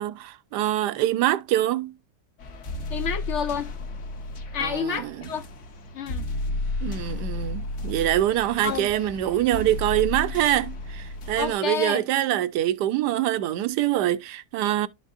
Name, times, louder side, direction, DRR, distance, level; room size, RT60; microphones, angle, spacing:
voice 1, 0.0-1.9 4.6-5.2 6.8-14.9, right 13 dB, 80° right, 1.2 m, -24 dB
sound 1, 2.4-11.5, left 2 dB, 50° left, 1.2 m, -33 dB
voice 2, 2.9-3.7 4.5-5.4 5.9-6.3 8.6-8.9 11.4-12.0, left 7 dB, 70° left, 0.6 m, -29 dB
12.0 x 5.4 x 2.5 m
omnidirectional pair, 1.8 m